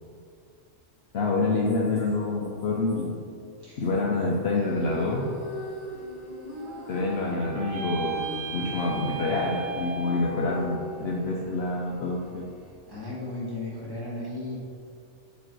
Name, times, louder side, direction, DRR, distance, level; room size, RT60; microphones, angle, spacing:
voice 1, 1.1-3.2 3.8-5.3 6.9-12.5, left 3 dB, 60° left, -3 dB, 0.8 m, -27 dB
sound 1, 4.5-12.8, equal, 25° left, 1.6 m, -41 dB
sound 2, 6.5-10.8, right 5 dB, 65° right, 1.1 m, -36 dB
voice 2, 12.8-14.6, left 2 dB, 20° right, -6 dB, 1.4 m, -35 dB
7.1 x 3.1 x 4.4 m, 2.4 s
omnidirectional pair, 1.3 m